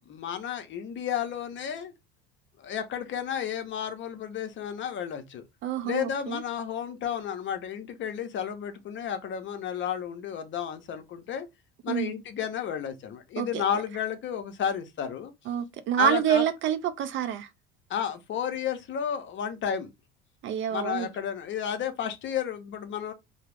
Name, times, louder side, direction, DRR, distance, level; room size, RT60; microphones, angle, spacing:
voice 1, 0.1-1.9 2.6-5.4 5.8-11.5 11.8-15.3 16.0-16.4 17.9-19.9 20.7-23.1, left 8 dB, 40° left, 0.6 m, -32 dB
voice 2, 5.6-6.4 11.9-12.1 13.4-13.6 15.5-17.5 20.4-21.1, right 9 dB, 45° right, 0.4 m, -27 dB
2.2 x 2.0 x 3.2 m
hypercardioid pair, 70°, 29 cm